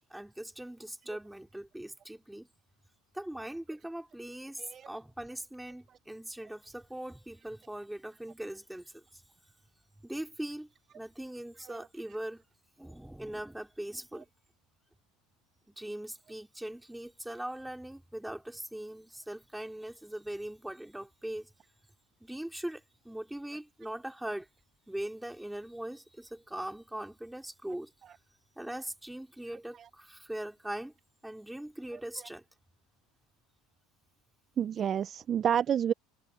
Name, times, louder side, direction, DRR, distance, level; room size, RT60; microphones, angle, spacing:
voice 1, 0.1-2.5 3.1-9.2 10.0-10.7 10.9-12.4 12.8-14.3 15.7-21.5 22.2-24.5 24.9-27.9 28.6-30.9 31.2-32.4, right 1 dB, 5° right, 3.3 m, -41 dB
voice 2, 34.6-35.9, right 9 dB, 30° right, 0.4 m, -29 dB
supercardioid pair, 135°, 0 cm